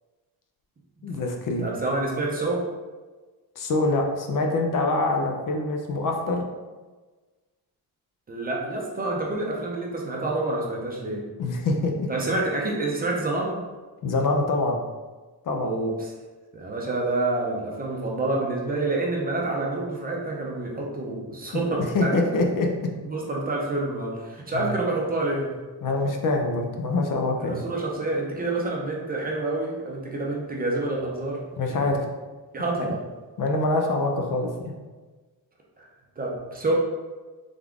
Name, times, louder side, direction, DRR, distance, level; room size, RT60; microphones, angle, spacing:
voice 1, 1.0-1.7 3.6-6.4 11.4-12.1 14.0-14.8 15.5-15.8 21.5-21.6 21.9-22.7 24.5-24.8 25.8-27.6 31.6-32.0 32.8-32.9 33.4-34.7, left 2 dB, 55° left, 2 dB, 0.6 m, -25 dB
voice 2, 1.6-2.6 8.3-11.2 12.1-13.6 15.6-16.1 16.5-22.1 23.0-25.6 27.4-31.8 32.5-33.0 35.8-35.9 36.2-36.7, right 2 dB, 25° right, -2 dB, 0.5 m, -28 dB
3.6 x 3.5 x 3.5 m, 1.3 s
wide cardioid pair, 180°, 39 cm